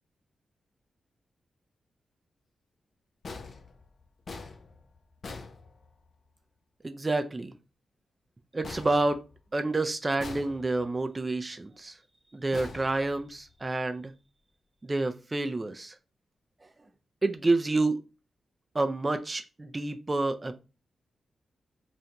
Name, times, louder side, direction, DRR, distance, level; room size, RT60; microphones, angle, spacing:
sound 1, 3.2-6.3 8.6-9.7 10.2-11.0 12.5-13.6, left 3 dB, 55° left, 0.4 m, -44 dB
voice 1, 6.8-7.5 8.5-9.2 9.5-12.0 12.3-14.1 14.8-16.0 17.2-18.1 18.7-20.6, right 2 dB, 25° right, 0.3 m, -29 dB
2.5 x 2.2 x 2.8 m
cardioid pair, 80°, 0 cm